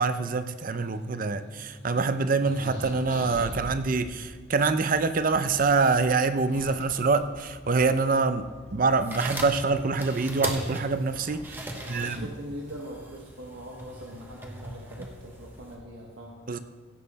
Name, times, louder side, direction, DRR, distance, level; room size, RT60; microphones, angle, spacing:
voice 1, 0.0-12.3 16.5-16.6, right 4 dB, 45° right, 11 dB, 0.6 m, -25 dB
sound 1, 0.6-3.8 5.1-5.2 6.2-8.1 9.2-9.6 10.6-10.7 11.1-11.4, left 1 dB, 75° left, 1.8 m, -43 dB
sound 2, 3.4-15.8, equal, 30° left, 1.5 m, -51 dB
sound 3, 8.9-15.8, right 1 dB, 10° right, 1.0 m, -38 dB
voice 2, 11.7-16.5, equal, 80° right, -1 dB, 1.2 m, -42 dB
16.0 x 7.5 x 4.1 m, 1.4 s
head